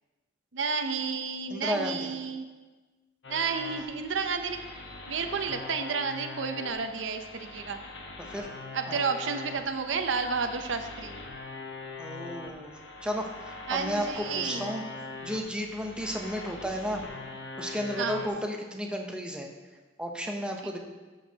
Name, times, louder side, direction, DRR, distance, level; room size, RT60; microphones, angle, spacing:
voice 1, 0.5-2.5 3.3-4.6 5.1-7.8 8.7-11.2 13.7-14.7 18.0-18.2, right 5 dB, 80° right, 7 dB, 0.7 m, -31 dB
voice 2, 1.5-2.1 8.3-8.5 8.9-9.0 12.0-14.8 15.2-17.0 17.6-19.5 20.0-20.8, equal, 5° right, 1 dB, 0.8 m, -33 dB
sound 1, 3.2-18.3, left 3 dB, 70° left, 1.1 m, -42 dB
13.0 x 6.5 x 2.9 m, 1.3 s
head